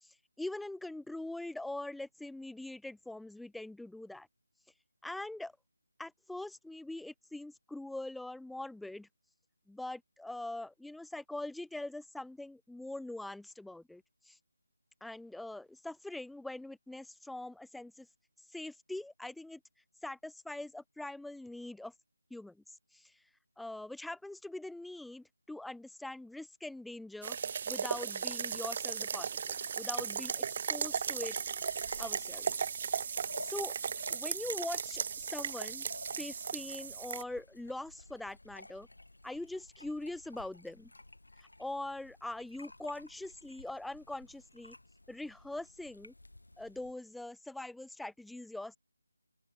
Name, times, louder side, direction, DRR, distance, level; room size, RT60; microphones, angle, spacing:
voice 1, 0.0-4.3 5.0-5.5 6.0-9.1 9.7-14.4 15.0-18.1 18.5-19.6 20.0-21.9 22.3-23.1 23.6-27.4 27.7-31.3 32.0-32.4 33.4-33.8 34.1-35.9 36.2-38.9 39.2-40.9 41.4-44.8 45.1-46.1 46.6-48.8, left 2 dB, ahead, 0.6 m, -43 dB
sound 1, 27.2-37.2, right 7 dB, 35° right, 1.5 m, -36 dB
sound 2, 30.8-46.9, left 2 dB, 85° left, 3.3 m, -53 dB
open air
figure-of-eight pair, 160°, 0 cm